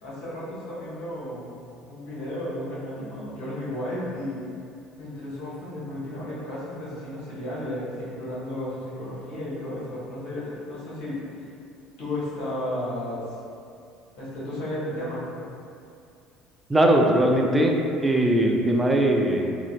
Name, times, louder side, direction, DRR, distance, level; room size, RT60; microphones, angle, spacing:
voice 1, 0.0-1.5 1.9-4.4 5.0-11.5 12.0-13.4 14.2-15.2, left 1 dB, 65° left, -9 dB, 1.0 m, -33 dB
voice 2, 16.7-17.7 18.0-19.5, right 1 dB, 15° right, 1 dB, 0.4 m, -20 dB
3.7 x 2.1 x 2.4 m, 2.4 s
hypercardioid pair, 65°, 0 cm